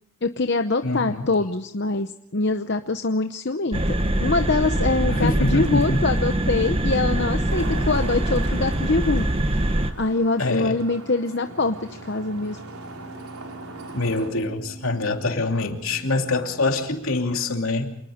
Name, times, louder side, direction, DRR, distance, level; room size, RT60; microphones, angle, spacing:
voice 1, 0.2-3.8 4.2-9.7 10.0-12.6, left 3 dB, 50° left, 7 dB, 0.9 m, -24 dB
voice 2, 0.8-1.3 5.1-6.0 10.4-10.8 13.9-18.0, left 2 dB, 70° left, 3 dB, 2.9 m, -25 dB
sound 1, 3.7-9.9, right 1 dB, 25° right, 1.2 m, -23 dB
Traffic noise roadway noise, 7.5-14.3, right 2 dB, 90° right, 3.9 m, -40 dB
sound 2, 11.4-17.2, right 1 dB, 5° right, 6.7 m, -43 dB
27.5 x 20.5 x 5.1 m, 0.79 s
head